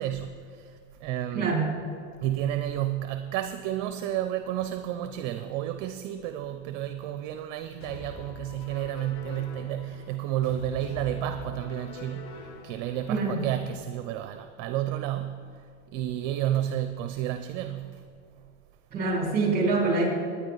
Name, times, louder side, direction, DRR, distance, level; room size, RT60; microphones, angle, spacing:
voice 1, 0.0-1.5 2.2-15.5 15.9-18.1, right 12 dB, 50° right, 8 dB, 0.7 m, -31 dB
voice 2, 1.3-1.7 13.1-13.4 18.9-20.1, right 3 dB, 25° right, -1 dB, 3.9 m, -25 dB
sound 1, 7.8-13.8, left 4 dB, 50° left, 1.5 m, -44 dB
17.5 x 9.8 x 4.0 m, 2.4 s
supercardioid pair, 125°, 37 cm